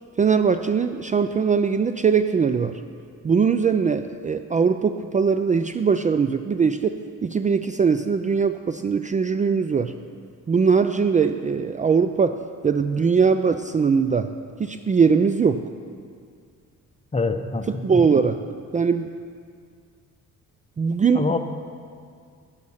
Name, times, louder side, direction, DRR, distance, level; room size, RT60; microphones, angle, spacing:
voice 1, 0.2-2.8 3.2-9.9 10.5-14.3 14.6-15.7 17.8-18.4 18.7-19.1 20.8-21.3, right 5 dB, 25° right, 10 dB, 0.4 m, -21 dB
voice 2, 17.1-18.0 21.1-21.4, left 3 dB, 20° left, 8 dB, 0.8 m, -25 dB
11.5 x 10.5 x 5.6 m, 2.2 s
cardioid pair, 90°, 30 cm